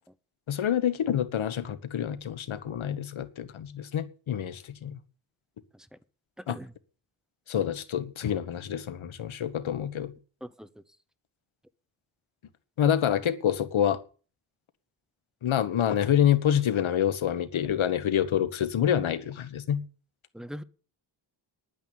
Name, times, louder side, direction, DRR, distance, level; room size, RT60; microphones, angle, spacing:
voice 1, 0.5-5.0 6.5-6.6 7.5-10.1 12.8-14.0 15.4-19.8, left 9 dB, 75° left, 1.4 m, -27 dB
voice 2, 6.4-6.7 10.4-10.7 20.3-20.6, equal, ahead, 0.7 m, -41 dB
10.5 x 9.4 x 7.1 m
wide cardioid pair, 130°, 48 cm